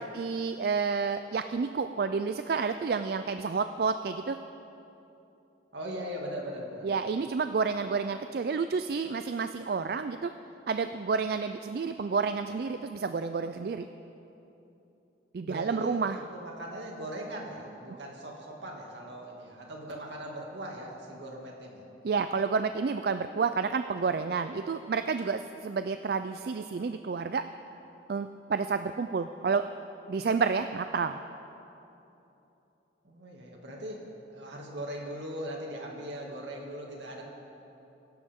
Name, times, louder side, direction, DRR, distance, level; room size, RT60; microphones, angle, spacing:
voice 1, 0.0-4.4 6.8-10.3 10.7-13.9 15.3-16.2 22.0-27.4 28.1-29.6 30.1-31.2, right 5 dB, 55° right, 9 dB, 0.3 m, -30 dB
voice 2, 5.7-6.9 15.4-16.0 16.3-21.8 33.0-34.0 34.3-37.2, equal, 75° right, -1 dB, 2.3 m, -40 dB
22.5 x 11.5 x 3.7 m, 3.0 s
head